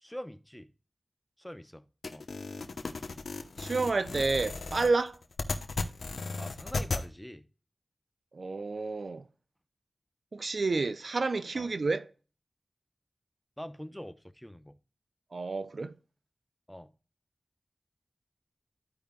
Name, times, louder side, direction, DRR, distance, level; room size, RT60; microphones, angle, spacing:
voice 1, 0.0-0.7 1.4-1.8 2.1-2.3 6.4-7.5 11.5-11.7 13.6-14.8 16.7-16.9, equal, 10° left, 0.9 m, -44 dB
sound 1, 2.0-7.0, left 3 dB, 85° left, 0.9 m, -36 dB
voice 2, 3.6-5.2 8.3-9.2 10.3-12.1 15.3-15.9, right 3 dB, 70° right, 0.5 m, -30 dB
14.0 x 5.1 x 2.3 m
cardioid pair, 40°, 0 cm